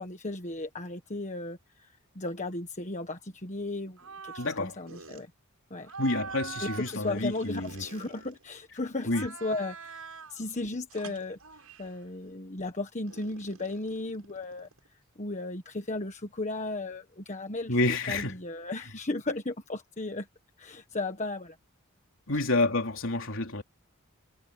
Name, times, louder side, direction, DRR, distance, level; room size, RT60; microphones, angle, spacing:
voice 1, 0.0-4.0 4.2-5.3 5.7-5.9 6.6-11.4 11.8-14.7 15.2-17.8 18.1-20.3 20.6-21.6, left 2 dB, 35° left, 1.5 m, -35 dB
sound 1, 4.0-4.6 4.9-5.2 5.8-8.6 9.0-10.4 10.9-12.0 13.1-14.9, right 5 dB, 80° right, 7.4 m, -44 dB
voice 2, 4.4-4.7 6.0-7.8 9.1-9.3 17.7-18.4 22.3-23.6, left 2 dB, 60° left, 3.9 m, -28 dB
head